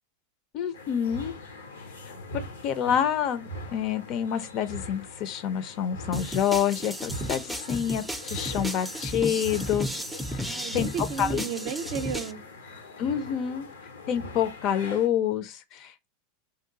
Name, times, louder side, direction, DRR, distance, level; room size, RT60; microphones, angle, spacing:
voice 1, 0.5-1.3 2.6-9.9 10.5-10.9 11.2-11.4 13.0-13.7 14.1-16.1, left 9 dB, 50° left, 0.5 m, -27 dB
sound 1, 0.7-15.1, left 2 dB, 85° left, 0.8 m, -42 dB
sound 2, 6.1-12.3, equal, ahead, 0.5 m, -34 dB
voice 2, 10.4-12.4, right 7 dB, 50° right, 0.5 m, -34 dB
2.6 x 2.3 x 3.9 m
hypercardioid pair, 105°, 0 cm